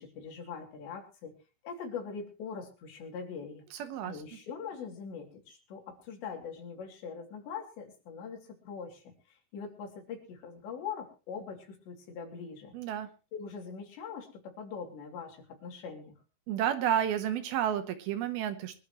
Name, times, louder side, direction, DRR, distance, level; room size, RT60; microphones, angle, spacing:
voice 1, 0.0-1.4 1.6-12.7 13.3-16.1, left 6 dB, 85° left, 2 dB, 5.1 m, -42 dB
voice 2, 3.7-4.2 12.7-13.1 16.5-18.8, right 10 dB, 70° right, 9 dB, 2.7 m, -31 dB
23.5 x 12.0 x 3.1 m, 0.34 s
omnidirectional pair, 5.0 m